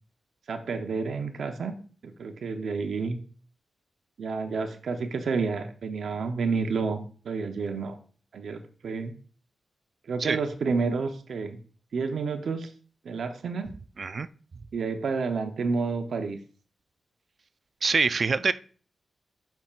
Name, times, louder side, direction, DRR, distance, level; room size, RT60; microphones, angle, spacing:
voice 1, 0.5-1.7 2.0-3.2 4.2-8.0 8.3-9.1 10.1-11.6 11.9-12.7 13.0-13.7 14.7-16.4, right 4 dB, 75° right, 6 dB, 0.8 m, -30 dB
voice 2, 17.8-18.5, right 4 dB, 50° right, 14 dB, 0.4 m, -24 dB
8.5 x 5.8 x 2.5 m, 0.41 s
wide cardioid pair, 95°, 0 cm